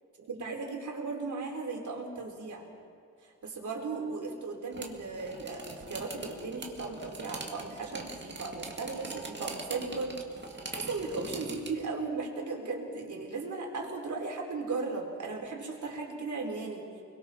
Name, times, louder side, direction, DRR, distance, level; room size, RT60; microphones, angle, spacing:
voice 1, 0.3-2.7 3.2-10.4 10.7-16.8, right 3 dB, 70° right, 0 dB, 4.3 m, -36 dB
sound 1, 4.7-11.8, right 3 dB, 35° right, 2.1 m, -42 dB
30.0 x 22.0 x 4.5 m, 2.5 s
wide cardioid pair, 145°, 31 cm